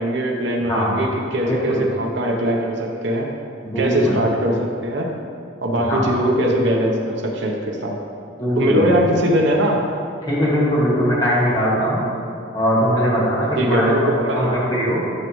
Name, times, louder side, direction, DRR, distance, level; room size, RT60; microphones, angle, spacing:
voice 1, 0.0-3.3 3.8-5.1 5.6-8.0 8.6-9.8 13.6-14.6, right 1 dB, 65° right, 0 dB, 0.8 m, -21 dB
voice 2, 0.7-1.0 1.5-1.9 3.6-4.2 5.9-6.0 8.4-8.9 10.3-12.0 12.5-15.0, equal, 20° left, -7 dB, 1.9 m, -20 dB
11.5 x 5.1 x 3.1 m, 2.5 s
head